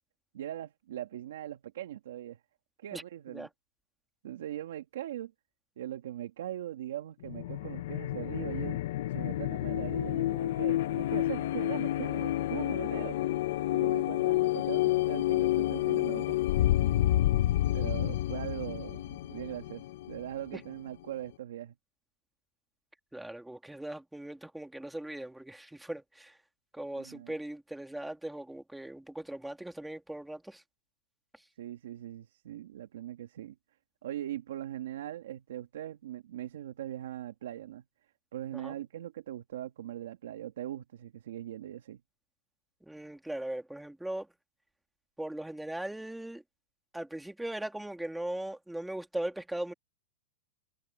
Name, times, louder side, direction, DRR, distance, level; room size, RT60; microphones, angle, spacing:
voice 1, 0.3-2.4 2.8-3.5 4.2-5.3 5.8-8.8 9.1-13.2 13.7-16.4 17.7-21.7 26.9-27.3 31.6-33.6 34.0-37.8 38.3-42.0, right 12 dB, 65° right, 2.1 m, -40 dB
sound 1, 7.2-20.7, left 14 dB, 45° left, 0.6 m, -29 dB
voice 2, 18.2-18.8 20.5-20.6 23.1-26.4 26.7-30.6 38.5-38.7 42.8-44.3 45.2-46.4 46.9-49.7, right 1 dB, ahead, 1.9 m, -39 dB
supercardioid pair, 180°, 0 cm